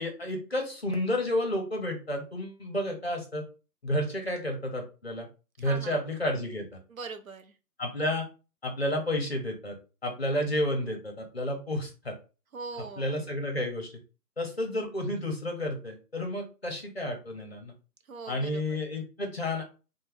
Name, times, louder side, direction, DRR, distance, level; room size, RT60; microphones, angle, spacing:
voice 1, 0.0-3.4 3.8-5.3 5.6-6.8 7.8-8.3 8.6-9.7 10.0-12.1 13.0-13.9 14.4-17.7 18.3-19.6, left 1 dB, 40° left, 2 dB, 0.6 m, -31 dB
voice 2, 5.6-6.0 6.9-7.5 12.5-13.1 18.1-18.8, right 4 dB, 60° right, 7 dB, 0.5 m, -41 dB
2.8 x 2.2 x 3.2 m, 0.33 s
figure-of-eight pair, 170°, 48 cm